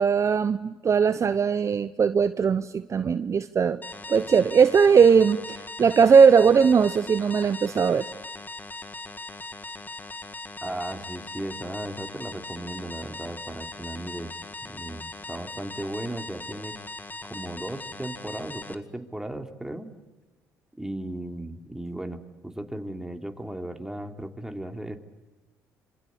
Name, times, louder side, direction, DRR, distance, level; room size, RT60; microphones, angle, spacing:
voice 1, 0.0-3.8 4.1-8.1, right 6 dB, 40° right, 13 dB, 0.9 m, -19 dB
sound 1, 3.8-18.7, left 2 dB, 25° left, 2.1 m, -40 dB
voice 2, 10.6-14.3 14.6-16.7 17.2-19.9 20.7-25.0, right 1 dB, 5° right, 5 dB, 3.2 m, -36 dB
27.5 x 24.5 x 8.5 m, 1.1 s
hypercardioid pair, 55°, 7 cm